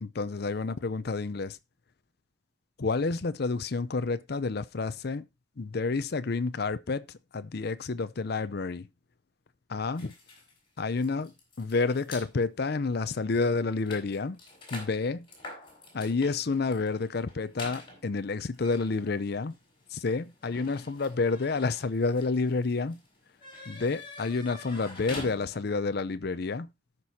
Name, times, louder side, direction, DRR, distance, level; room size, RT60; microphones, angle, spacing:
voice 1, 0.0-1.6 2.8-5.2 5.6-7.0 7.3-8.9 9.7-10.1 10.8-14.4 14.7-15.3 15.9-19.5 19.9-23.0 23.7-26.7, left 4 dB, 55° left, 0.6 m, -29 dB
sound 1, 10.0-12.3 13.0-13.1 13.4-25.9, left 2 dB, 25° left, 4.9 m, -47 dB
18.0 x 6.1 x 2.7 m
head